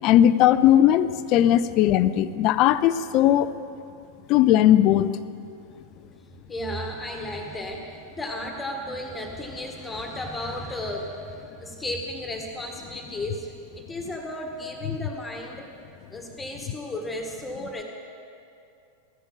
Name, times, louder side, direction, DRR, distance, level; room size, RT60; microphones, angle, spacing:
voice 1, 0.0-3.5 4.3-5.2, left 12 dB, 40° left, 15 dB, 0.4 m, -18 dB
voice 2, 6.5-15.7 16.1-17.8, left 1 dB, 10° left, 2 dB, 1.7 m, -34 dB
15.0 x 10.0 x 5.7 m, 2.5 s
figure-of-eight pair, 90°, 0 cm